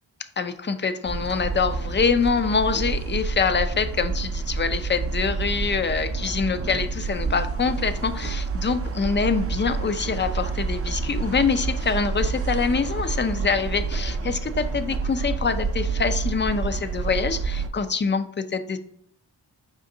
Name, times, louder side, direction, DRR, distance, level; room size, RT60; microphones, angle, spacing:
voice 1, 0.4-18.8, left 5 dB, 25° left, 11 dB, 0.4 m, -25 dB
sound 1, 1.1-17.7, right 4 dB, 35° right, 0.5 m, -28 dB
5.0 x 3.8 x 2.6 m, 0.69 s
wide cardioid pair, 65°, 45 cm